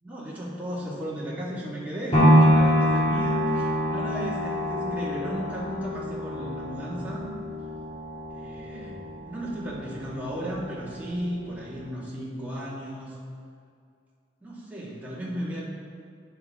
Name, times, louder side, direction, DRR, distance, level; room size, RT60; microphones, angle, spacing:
voice 1, 0.0-7.3 8.3-13.2 14.4-15.6, equal, 10° right, -7 dB, 1.7 m, -35 dB
sound 1, 2.1-10.2 10.7-10.8, equal, 30° left, 2.1 m, -25 dB
9.4 x 7.2 x 3.6 m, 2.3 s
head